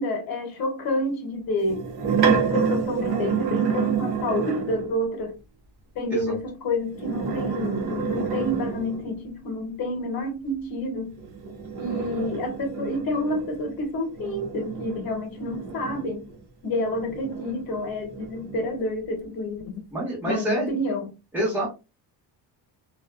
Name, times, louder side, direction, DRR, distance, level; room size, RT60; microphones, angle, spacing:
voice 1, 0.0-1.8 2.2-5.4 5.9-11.2 11.8-16.3 16.6-19.7 20.2-21.1, left 1 dB, 55° left, 1.0 m, -29 dB
sound 1, 1.6-4.9 6.9-9.2 11.2-16.4 16.9-18.7, right 6 dB, 60° right, 0.7 m, -28 dB
voice 2, 19.9-20.8 21.3-21.7, right 1 dB, 5° right, 1.0 m, -27 dB
2.5 x 2.2 x 2.3 m
cardioid pair, 145°, 43 cm